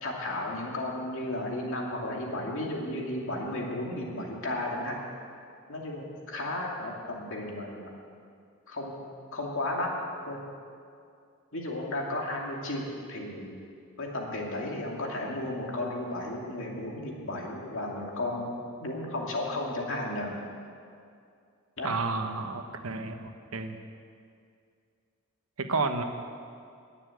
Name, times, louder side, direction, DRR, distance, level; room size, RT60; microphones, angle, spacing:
voice 1, 0.0-5.0 5.7-7.9 8.7-9.0 9.3-9.9 10.3-10.4 11.5-13.6 14.0-20.3 21.8-22.0, left 1 dB, 60° left, -1 dB, 2.6 m, -34 dB
voice 2, 21.8-23.8 25.6-26.0, right 3 dB, 75° right, 6 dB, 1.1 m, -31 dB
20.5 x 7.2 x 7.9 m, 2.4 s
head